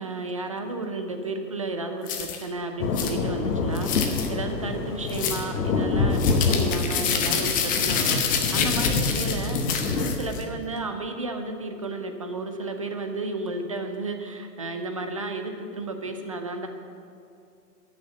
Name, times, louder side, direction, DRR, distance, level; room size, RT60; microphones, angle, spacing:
voice 1, 0.0-9.6 10.0-16.7, right 2 dB, 25° right, 6 dB, 0.4 m, -33 dB
sound 1, 2.1-2.4 2.9-3.1 3.7-4.3 5.1-5.4 6.1-10.4, left 7 dB, 15° left, 0.8 m, -28 dB
sound 2, 2.8-10.2, left 4 dB, 65° left, 1.4 m, -26 dB
11.0 x 6.4 x 8.3 m, 2.6 s
hypercardioid pair, 125°, 50 cm